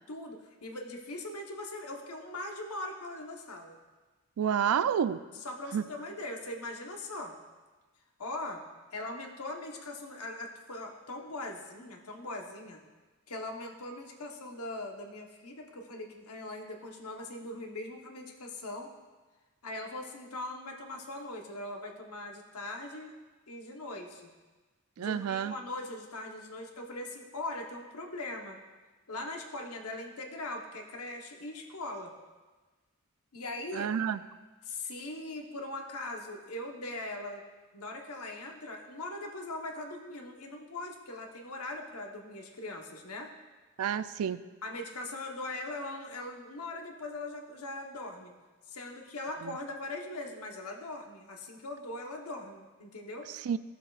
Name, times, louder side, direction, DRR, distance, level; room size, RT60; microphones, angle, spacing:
voice 1, 0.1-3.8 5.4-7.3 8.2-8.6 8.9-12.8 13.3-18.9 19.6-23.1 23.5-24.3 25.0-28.6 29.1-32.1 33.3-33.9 34.6-37.4 37.7-43.3 44.6-48.3 48.7-53.3, left 2 dB, 85° left, 3 dB, 1.1 m, -40 dB
voice 2, 4.4-5.2 5.7-5.8 25.0-25.5 33.7-34.2 43.8-44.4 49.4-49.5 53.3-53.6, right 8 dB, 75° right, 14 dB, 0.3 m, -29 dB
14.5 x 7.0 x 2.4 m, 1.3 s
head